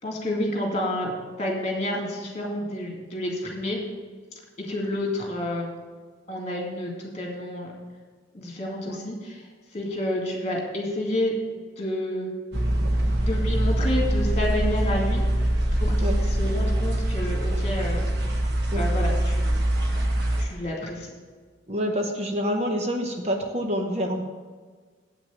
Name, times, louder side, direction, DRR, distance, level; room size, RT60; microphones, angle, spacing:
voice 1, 0.0-3.8 4.3-5.7 6.3-7.7 8.3-9.5 9.7-11.3 11.8-12.3 13.2-15.2 15.8-18.1 18.8-19.6 20.4-21.1, left 1 dB, 35° left, 0 dB, 2.2 m, -29 dB
sound 1, 12.5-20.4, right 1 dB, 55° right, 1.2 m, -24 dB
voice 2, 21.7-24.2, equal, 30° right, 3 dB, 0.8 m, -27 dB
8.5 x 6.0 x 7.3 m, 1.5 s
head